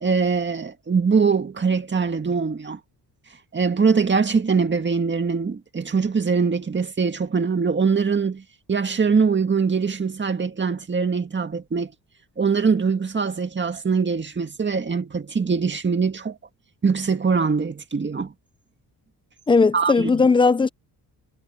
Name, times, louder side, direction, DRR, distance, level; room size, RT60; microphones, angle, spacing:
voice 1, 0.0-2.8 3.5-8.4 8.7-11.9 12.4-16.4 16.8-18.3 19.7-20.2, right 5 dB, 25° right, 1.9 m, -22 dB
voice 2, 19.5-20.7, left 4 dB, 15° left, 0.4 m, -17 dB
cardioid pair, 120°, 40 cm